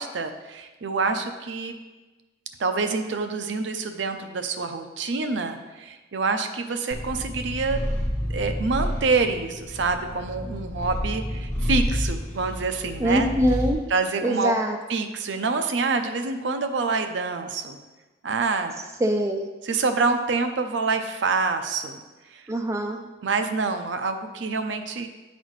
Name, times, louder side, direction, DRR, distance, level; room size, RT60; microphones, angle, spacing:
voice 1, 0.0-1.8 2.6-7.8 8.3-13.3 13.9-14.5 14.9-17.8 18.2-18.8 19.6-22.0 22.3-22.4 23.2-25.1, right 4 dB, 70° right, 7 dB, 0.5 m, -26 dB
Purr, 6.9-13.8, equal, 10° left, 0.9 m, -29 dB
voice 2, 13.0-13.8 14.2-14.8 19.0-19.5 22.5-23.0, equal, 15° right, 4 dB, 0.3 m, -23 dB
9.9 x 4.1 x 3.2 m, 1.2 s
head